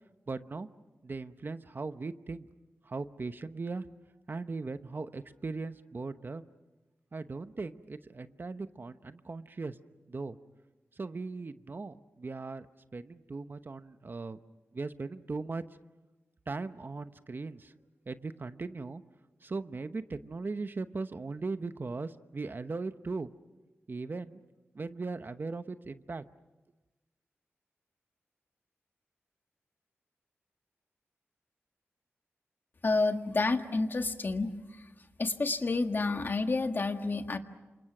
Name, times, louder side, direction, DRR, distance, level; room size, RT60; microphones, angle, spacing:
voice 1, 0.3-0.7 1.0-2.5 2.9-3.9 4.3-6.5 7.1-9.7 10.1-10.4 11.0-12.7 12.9-14.4 14.7-15.6 16.5-17.7 18.1-19.0 19.4-23.3 23.9-24.4 24.7-26.2, right 3 dB, 45° right, 11 dB, 0.9 m, -38 dB
voice 2, 32.8-34.5 35.2-37.4, left 3 dB, 45° left, 6 dB, 1.7 m, -29 dB
29.0 x 27.0 x 6.1 m, 1.1 s
wide cardioid pair, 80°, 5 cm